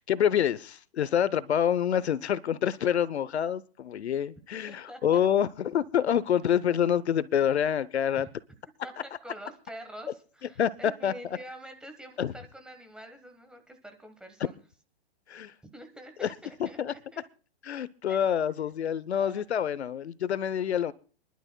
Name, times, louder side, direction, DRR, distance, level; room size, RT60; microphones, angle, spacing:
voice 1, 0.0-8.3 10.6-11.1 12.2-12.3 15.3-15.5 16.2-16.3 16.6-16.9 17.6-20.9, left 9 dB, 85° left, 19 dB, 0.8 m, -27 dB
voice 2, 4.7-5.0 8.1-8.2 8.8-14.6 15.7-17.2 18.1-18.2 19.1-19.4, right 1 dB, ahead, 6 dB, 1.2 m, -46 dB
27.0 x 11.5 x 2.2 m, 0.39 s
hypercardioid pair, 140°, 32 cm